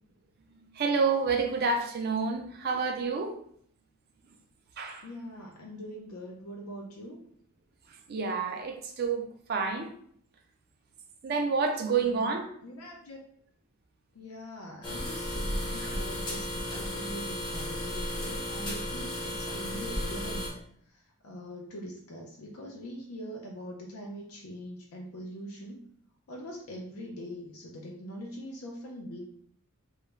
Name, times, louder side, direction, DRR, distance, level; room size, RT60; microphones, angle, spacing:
voice 1, 0.5-3.3 4.8-5.1 8.1-9.2 9.5-9.9 11.2-12.5 15.8-16.0, right 4 dB, 45° right, 0.4 m, -29 dB
voice 2, 5.0-7.2 11.9-12.3 12.6-13.2 14.1-20.5 20.9-25.9 26.3-29.2, equal, 85° left, 0.4 m, -42 dB
sound 1, 14.8-20.5, left 1 dB, 20° left, 0.5 m, -34 dB
2.3 x 2.0 x 3.1 m
head